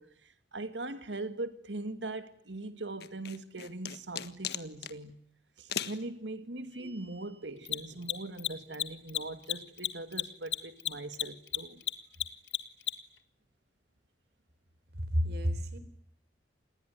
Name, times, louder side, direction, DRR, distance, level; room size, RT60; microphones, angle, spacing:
voice 1, 0.0-5.2 5.6-11.8, right 2 dB, 85° right, 2.3 m, -41 dB
sound 1, 3.0-5.0 5.7-6.0, left 9 dB, 65° left, 1.6 m, -37 dB
Mechanisms, 4.5-4.6 7.6-13.2, left 13 dB, 85° left, 1.8 m, -33 dB
sound 2, 6.7-7.6, right 2 dB, 10° left, 4.8 m, -56 dB
voice 2, 15.0-15.8, equal, 60° right, 4.0 m, -30 dB
28.5 x 20.0 x 9.4 m
head